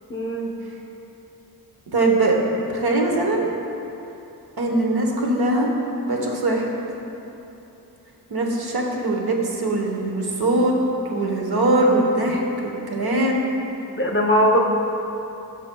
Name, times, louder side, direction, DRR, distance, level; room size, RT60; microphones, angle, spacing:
voice 1, 0.1-0.5 14.0-14.6, equal, 30° left, 2 dB, 0.7 m, -19 dB
voice 2, 1.9-2.4 2.7-3.4 4.6-5.7 6.0-6.7 8.3-10.7 11.0-13.4, right 2 dB, 70° right, 0 dB, 1.1 m, -21 dB
13.0 x 5.1 x 2.3 m, 2.9 s
cardioid pair, 60°, 39 cm